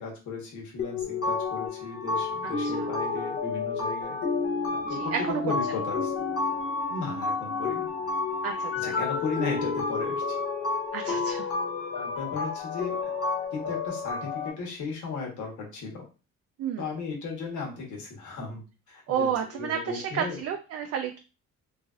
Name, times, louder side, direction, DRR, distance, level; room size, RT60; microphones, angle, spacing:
voice 1, 0.0-4.2 4.7-6.1 6.9-7.9 8.8-10.4 11.1-11.2 11.9-13.1 13.5-16.0 16.8-18.6 18.9-20.4, left 4 dB, 75° left, 0 dB, 1.2 m, -36 dB
sound 1, 0.8-14.5, left 4 dB, 50° left, 1.2 m, -30 dB
voice 2, 4.9-5.4 8.4-8.9 10.9-11.5 16.6-16.9 19.1-21.2, right 8 dB, 55° right, 4 dB, 0.4 m, -31 dB
3.1 x 2.7 x 2.4 m, 0.32 s
cardioid pair, 90°, 30 cm